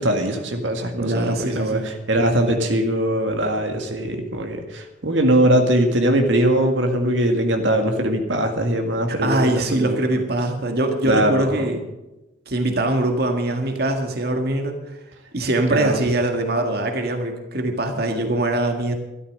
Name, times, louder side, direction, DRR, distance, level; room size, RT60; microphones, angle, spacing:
voice 1, 0.0-10.0 11.0-11.7 15.7-16.0, right 1 dB, 75° right, 4 dB, 1.9 m, -21 dB
voice 2, 0.9-1.9 9.2-11.8 12.5-14.8 15.3-18.9, right 2 dB, 55° right, 4 dB, 1.8 m, -22 dB
13.0 x 12.5 x 6.6 m, 1.0 s
head